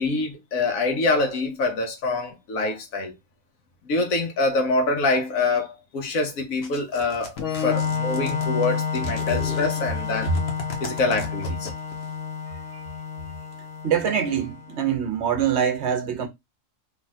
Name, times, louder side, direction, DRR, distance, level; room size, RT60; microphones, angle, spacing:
voice 1, 0.0-3.1 3.9-7.3 7.6-10.3 10.8-11.7, left 3 dB, 90° left, 1.4 m, -25 dB
sound 1, 6.6-12.1, left 3 dB, 55° left, 1.1 m, -37 dB
Organ, 7.4-14.9, left 6 dB, 70° left, 1.2 m, -30 dB
voice 2, 13.8-16.3, right 8 dB, 60° right, 0.9 m, -24 dB
3.3 x 2.4 x 4.0 m
omnidirectional pair, 1.4 m